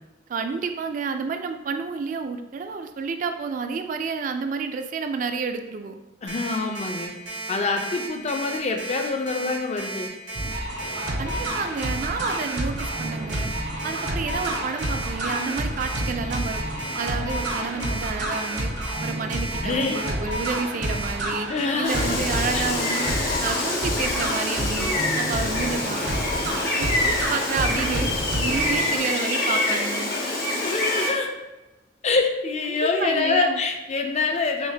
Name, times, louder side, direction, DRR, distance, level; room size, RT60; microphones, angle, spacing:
voice 1, 0.3-6.0 11.2-13.5 13.8-16.6 17.0-18.7 19.0-21.5 21.8-26.2 26.8-30.1 32.7-33.6, right 5 dB, 45° right, 7 dB, 0.3 m, -30 dB
voice 2, 6.2-7.1 7.5-10.1 19.6-20.0 21.5-22.2 22.5-23.0 24.8-25.2 29.5-29.8 30.1-31.3 32.0-34.7, left 3 dB, 35° left, 4 dB, 0.4 m, -26 dB
Alarm, 6.3-21.1, right 2 dB, 90° right, 1.0 m, -34 dB
sound 1, 10.4-29.0, right 1 dB, 65° right, 0.8 m, -30 dB
Gull seagull, 21.8-31.1, left 2 dB, 55° left, 0.9 m, -26 dB
5.9 x 2.1 x 2.7 m, 1.1 s
head